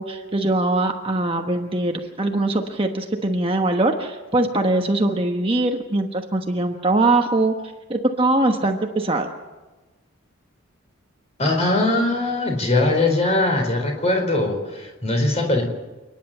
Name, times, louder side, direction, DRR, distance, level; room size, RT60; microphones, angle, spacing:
voice 1, 0.0-7.5 7.9-9.3, right 2 dB, 25° right, 3 dB, 1.2 m, -22 dB
voice 2, 11.4-15.6, left 2 dB, 30° left, 2 dB, 4.3 m, -21 dB
28.5 x 10.5 x 8.8 m, 1.2 s
head